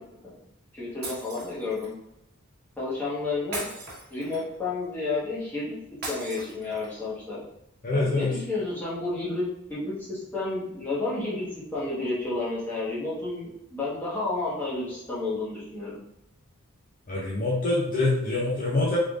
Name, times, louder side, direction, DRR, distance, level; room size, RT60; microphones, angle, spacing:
voice 1, 0.7-1.9 2.8-3.7 4.1-5.8 6.1-7.4 7.9-11.4 11.7-16.0, left 3 dB, 10° left, -9 dB, 1.2 m, -31 dB
Shatter, 1.0-1.9 3.5-4.6 6.0-7.0, right 2 dB, 50° right, 1.2 m, -38 dB
voice 2, 7.8-8.3 17.1-19.0, left 2 dB, 40° left, -5 dB, 0.6 m, -25 dB
3.5 x 3.3 x 2.5 m, 0.82 s
head